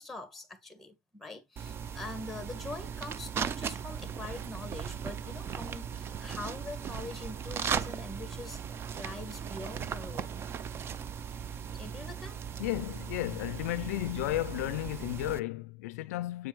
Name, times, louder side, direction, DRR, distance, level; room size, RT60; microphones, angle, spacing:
voice 1, 0.0-8.6 8.9-10.4 11.7-12.4, left 2 dB, ahead, 1.5 m, -43 dB
sound 1, 1.6-15.4, right 7 dB, 30° right, 0.5 m, -38 dB
voice 2, 12.6-16.5, left 16 dB, 75° left, 0.4 m, -33 dB
7.6 x 4.5 x 3.1 m
supercardioid pair, 115°, 8 cm